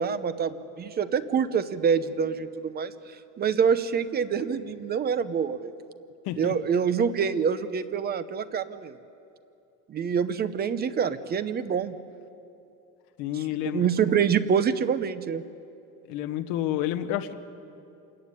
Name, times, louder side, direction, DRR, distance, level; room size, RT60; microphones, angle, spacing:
voice 1, 0.0-5.7 6.4-9.0 9.9-12.0 13.7-15.4, right 7 dB, 30° right, 13 dB, 0.7 m, -26 dB
voice 2, 13.2-13.8 16.1-17.3, left 12 dB, 90° left, 8 dB, 1.5 m, -29 dB
26.5 x 14.5 x 9.8 m, 2.6 s
cardioid pair, 160°, 34 cm